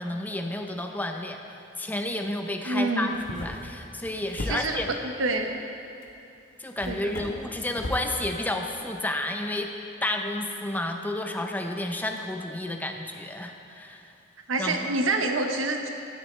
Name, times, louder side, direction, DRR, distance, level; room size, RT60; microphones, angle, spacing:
voice 1, 0.0-4.9 6.6-9.7 10.0-14.1 14.6-14.9, left 1 dB, 10° left, 4 dB, 0.6 m, -31 dB
voice 2, 2.6-3.2 4.5-4.8 5.2-5.6 6.9-7.3 14.5-15.9, right 2 dB, 90° right, 4 dB, 0.9 m, -27 dB
sound 1, 3.0-5.0 6.0-6.1 6.8-8.1, left 1 dB, 70° left, 1.1 m, -37 dB
13.0 x 9.8 x 3.2 m, 2.7 s
head